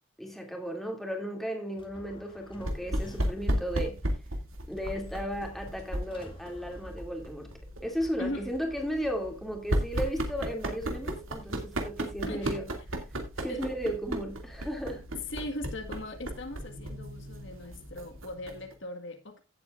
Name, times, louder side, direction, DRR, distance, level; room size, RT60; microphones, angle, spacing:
voice 1, 0.2-4.0 4.7-7.5 7.8-12.7 13.4-15.0, equal, ahead, 2.5 m, -35 dB
sound 1, 1.8-3.6 4.7-7.6, left 1 dB, 25° left, 1.9 m, -52 dB
sound 2, 2.6-18.7, equal, 70° right, 2.4 m, -35 dB
voice 2, 12.2-12.6 13.5-13.6 15.1-19.4, left 1 dB, 60° left, 1.6 m, -39 dB
16.5 x 8.3 x 2.5 m
head